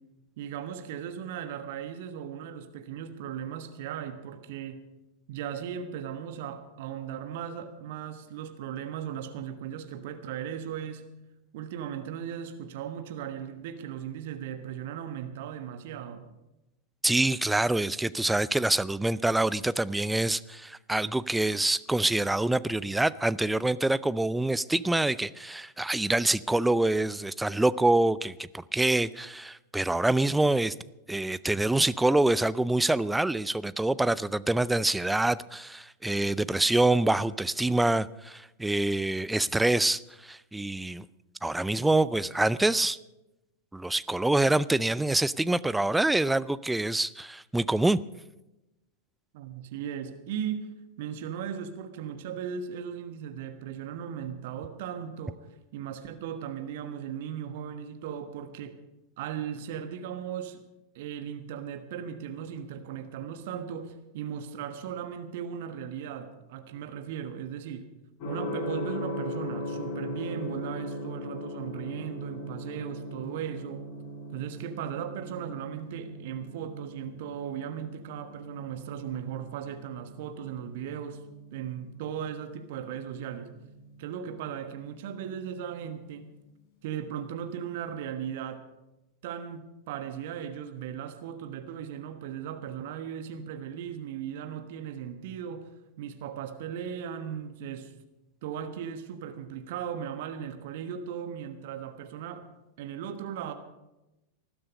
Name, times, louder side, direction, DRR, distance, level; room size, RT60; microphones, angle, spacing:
voice 1, 0.4-4.8 5.3-11.1 11.5-16.3 49.3-50.7 51.0-58.8 59.2-60.6 60.9-67.9 68.2-73.9 74.3-81.2 81.5-83.6 84.0-86.3 86.8-88.6 89.2-95.7 96.0-97.9 98.4-102.5 102.8-103.5, right 8 dB, 50° right, 1.3 m, -37 dB
voice 2, 17.0-30.7 31.1-41.1 41.4-43.0 43.7-48.0, right 2 dB, 5° right, 0.4 m, -26 dB
Gong, 68.2-86.1, left 1 dB, 45° left, 6.5 m, -40 dB
19.5 x 12.0 x 5.3 m
figure-of-eight pair, 90°, 0 cm